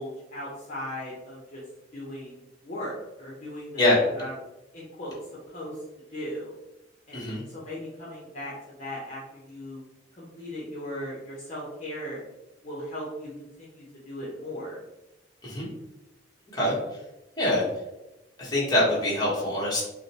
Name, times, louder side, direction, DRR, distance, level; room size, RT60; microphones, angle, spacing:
voice 1, 0.0-1.6 1.9-4.3 4.7-5.1 5.5-5.8 6.1-6.5 7.1-9.8 10.2-12.2 12.6-13.3 13.6-14.8, left 1 dB, 40° left, -6 dB, 0.9 m, -38 dB
voice 2, 18.4-19.8, left 1 dB, 20° left, -6 dB, 1.2 m, -24 dB
6.1 x 2.2 x 2.9 m, 0.97 s
head